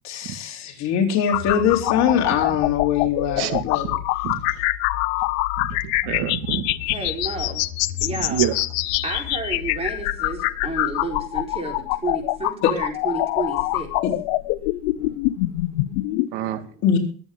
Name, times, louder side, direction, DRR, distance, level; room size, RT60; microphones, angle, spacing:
voice 1, 0.0-3.9 14.0-14.1 16.8-17.0, left 8 dB, 50° left, 2 dB, 3.9 m, -22 dB
sound 1, 1.3-16.3, left 18 dB, 75° left, 1.0 m, -25 dB
voice 2, 5.6-6.7 8.3-8.6 16.3-16.6, right 11 dB, 70° right, 10 dB, 2.0 m, -26 dB
voice 3, 6.8-8.5 8.9-14.0 14.7-16.8, right 3 dB, 15° right, 2 dB, 4.4 m, -32 dB
23.0 x 8.7 x 3.7 m, 0.43 s
cardioid pair, 150°, 36 cm